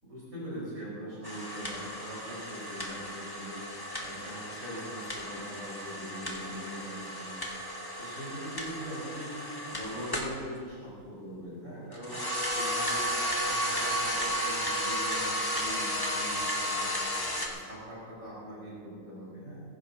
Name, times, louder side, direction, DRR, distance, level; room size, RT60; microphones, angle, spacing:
voice 1, 0.0-3.7 4.0-7.4 8.0-9.4 9.7-12.2 12.5-13.1 13.3-17.1 17.4-19.6, equal, 70° right, -8 dB, 5.4 m, -42 dB
sound 1, 1.2-10.4 11.9-17.5, equal, 15° left, 1.7 m, -33 dB
22.0 x 15.5 x 2.9 m, 2.1 s
omnidirectional pair, 1.4 m